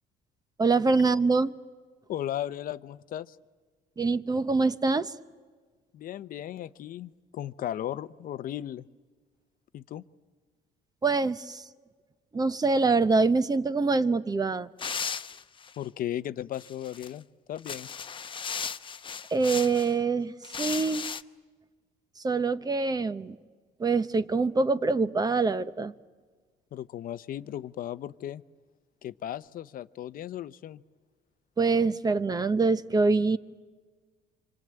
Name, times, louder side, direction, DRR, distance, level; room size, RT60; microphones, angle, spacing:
voice 1, 0.6-1.5 4.0-5.1 11.0-11.6 12.3-14.7 19.3-21.1 22.2-23.4 23.8-25.9 31.6-33.4, right 4 dB, 25° right, 13 dB, 0.9 m, -25 dB
voice 2, 2.1-3.4 5.9-8.9 9.7-10.0 15.8-17.9 26.7-28.4 29.0-30.8, left 11 dB, 55° left, 14 dB, 0.8 m, -36 dB
sound 1, 14.8-15.8 16.5-17.1 17.6-19.9 20.4-21.2, left 6 dB, 30° left, 0.8 m, -36 dB
26.0 x 25.5 x 8.8 m, 1.5 s
cardioid pair, 110°, 17 cm